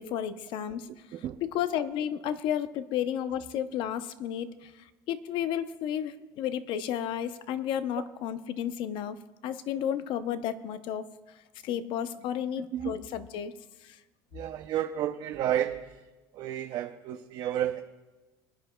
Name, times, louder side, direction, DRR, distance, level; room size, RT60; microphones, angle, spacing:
voice 1, 0.0-9.2 9.4-14.0, left 9 dB, 60° left, 12 dB, 0.7 m, -33 dB
voice 2, 14.3-15.9 16.3-17.8, right 11 dB, 50° right, 6 dB, 0.5 m, -31 dB
25.5 x 9.9 x 2.2 m, 1.1 s
cardioid pair, 140°, 10 cm